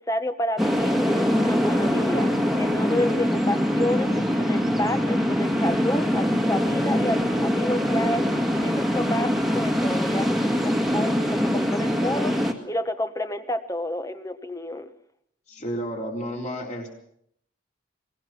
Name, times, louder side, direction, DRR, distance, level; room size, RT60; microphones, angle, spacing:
voice 1, 0.1-8.2 8.6-14.9, left 1 dB, 15° left, 9 dB, 1.2 m, -30 dB
sound 1, 0.6-12.5, equal, ahead, 1.8 m, -23 dB
voice 2, 15.5-16.9, equal, 35° left, 1 dB, 4.1 m, -31 dB
22.5 x 20.5 x 6.0 m, 0.70 s
head